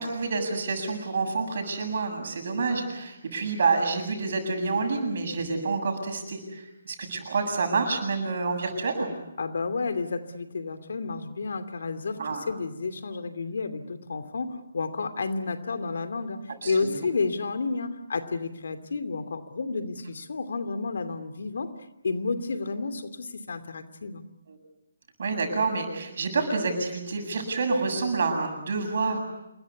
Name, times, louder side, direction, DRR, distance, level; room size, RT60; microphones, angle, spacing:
voice 1, 0.0-9.1 12.2-12.4 16.6-17.0 24.5-24.6 25.2-29.2, right 4 dB, 60° right, 6 dB, 7.7 m, -28 dB
voice 2, 9.4-12.2 12.5-21.7 22.0-24.2, left 4 dB, 65° left, 10 dB, 2.7 m, -31 dB
28.0 x 22.0 x 8.4 m, 0.88 s
figure-of-eight pair, 145°, 0 cm